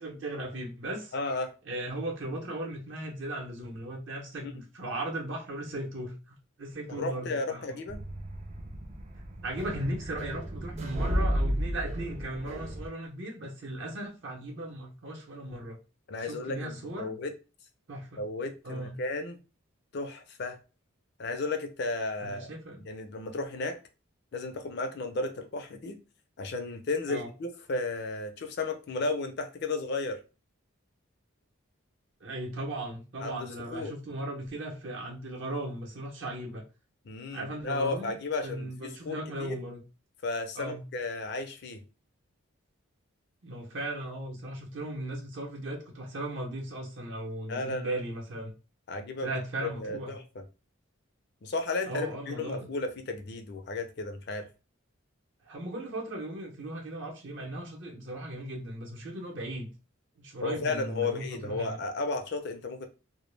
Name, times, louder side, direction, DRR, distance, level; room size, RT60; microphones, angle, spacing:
voice 1, 0.0-1.1 1.6-7.8 9.4-15.8 16.2-17.1 17.9-18.2 18.6-19.0 22.2-22.8 27.1-27.3 32.2-36.6 37.3-38.2 38.4-39.8 40.6-40.8 43.4-48.5 49.2-50.2 51.8-52.7 55.4-59.7 60.2-61.8, right 1 dB, 60° right, 0.7 m, -37 dB
voice 2, 1.1-1.5 4.4-4.5 6.9-8.0 16.1-17.3 18.2-19.4 19.9-20.6 21.2-22.5 22.8-23.8 24.3-26.0 26.4-30.2 33.2-33.9 37.1-39.6 40.2-41.8 47.5-48.0 48.9-49.3 49.6-50.5 51.4-54.5 60.4-62.9, left 3 dB, 50° left, 0.4 m, -34 dB
sound 1, 7.9-12.9, equal, 30° right, 0.3 m, -33 dB
2.1 x 2.0 x 3.1 m
head